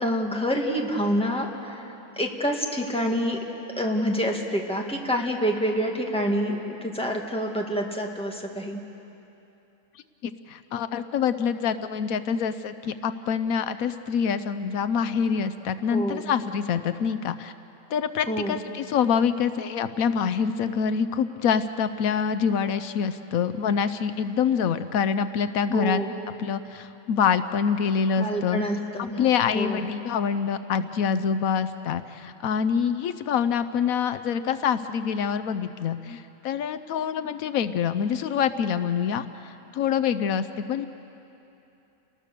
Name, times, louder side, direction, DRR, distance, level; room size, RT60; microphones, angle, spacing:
voice 1, 0.0-3.4 3.8-8.8 15.9-16.3 18.3-18.6 25.7-26.1 28.2-29.2 29.5-29.8, equal, 5° left, 0 dB, 2.0 m, -27 dB
voice 2, 10.2-17.5 17.9-26.0 26.4-28.6 29.2-40.9, left 7 dB, 80° left, 12 dB, 1.1 m, -26 dB
30.0 x 20.0 x 6.8 m, 2.9 s
omnidirectional pair, 1.5 m